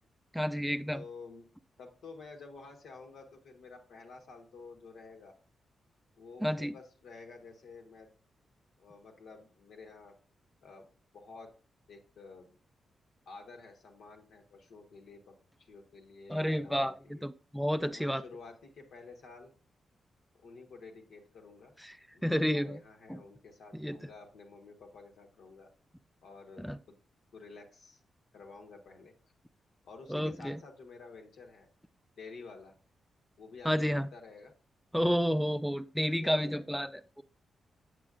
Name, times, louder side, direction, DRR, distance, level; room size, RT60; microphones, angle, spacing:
voice 1, 0.3-1.0 6.4-6.7 16.3-18.2 21.8-22.0 22.2-22.8 23.7-24.0 26.6-26.8 30.1-30.6 33.7-34.1 34.9-37.2, equal, ahead, 12 dB, 0.4 m, -30 dB
voice 2, 0.9-1.5 1.8-5.3 6.2-8.1 8.8-10.1 10.6-10.9 11.1-11.5 11.9-12.6 13.3-17.2 17.8-19.5 20.4-21.7 22.1-25.7 26.2-27.0 27.3-28.0 28.3-29.1 29.8-31.7 32.2-32.8 33.4-34.5 35.1-35.2 36.1-36.6, left 4 dB, 80° left, 2 dB, 1.2 m, -51 dB
7.9 x 6.2 x 2.4 m, 0.39 s
supercardioid pair, 55°, 0 cm